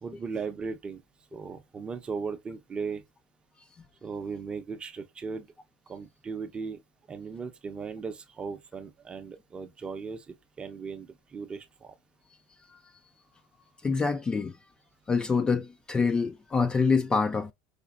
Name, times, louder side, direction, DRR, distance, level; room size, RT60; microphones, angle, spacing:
voice 1, 0.0-1.0 1.3-3.0 4.0-5.5 5.9-6.8 7.1-12.0, right 5 dB, 25° right, 0.6 m, -37 dB
voice 2, 13.8-14.6 15.1-17.5, left 4 dB, 20° left, 0.3 m, -26 dB
5.0 x 2.4 x 2.3 m
supercardioid pair, 125°, 4 cm